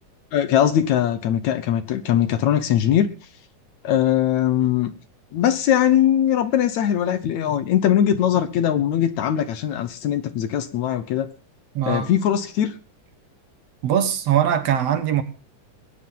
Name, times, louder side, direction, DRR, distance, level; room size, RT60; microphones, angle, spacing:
voice 1, 0.3-3.1 3.8-4.9 5.3-11.3 11.9-12.7, left 10 dB, 65° left, 2.2 m, -20 dB
voice 2, 11.8-12.1 13.8-15.2, right 9 dB, 60° right, 2.1 m, -21 dB
20.5 x 9.9 x 5.7 m
omnidirectional pair, 3.8 m